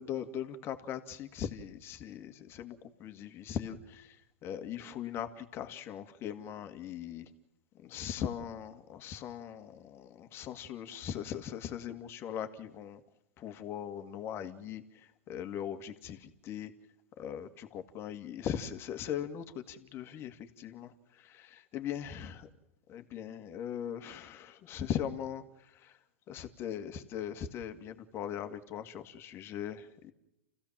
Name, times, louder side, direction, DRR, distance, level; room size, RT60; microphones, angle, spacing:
voice 1, 0.0-7.3 7.7-13.0 13.4-16.7 17.2-22.5 22.9-30.1, left 9 dB, 35° left, 8 dB, 2.2 m, -40 dB
29.5 x 16.0 x 7.5 m, 0.94 s
hypercardioid pair, 110°, 7 cm